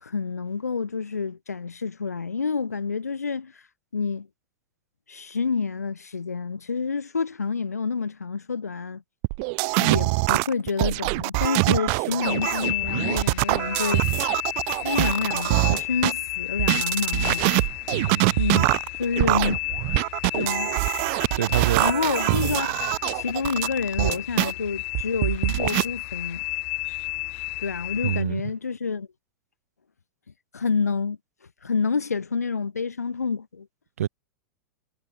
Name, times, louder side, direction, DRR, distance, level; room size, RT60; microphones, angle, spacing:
voice 1, 0.0-3.6 3.9-4.3 5.1-9.0 9.8-14.0 14.8-17.5 18.4-18.7 19.0-19.6 20.3-20.7 21.8-22.7 23.1-26.4 27.6-29.1 30.5-31.2 31.6-33.7, left 5 dB, 80° left, 2.8 m, -28 dB
sound 1, 9.2-16.1 16.6-24.5 24.9-25.8, right 40 dB or more, 45° right, 1.3 m, -24 dB
sound 2, 12.2-28.2, left 22 dB, 50° left, 1.9 m, -32 dB
voice 2, 17.9-18.4 21.4-21.8 28.0-28.4 34.0-34.1, right 11 dB, 65° right, 1.8 m, -26 dB
figure-of-eight pair, 95°, 8 cm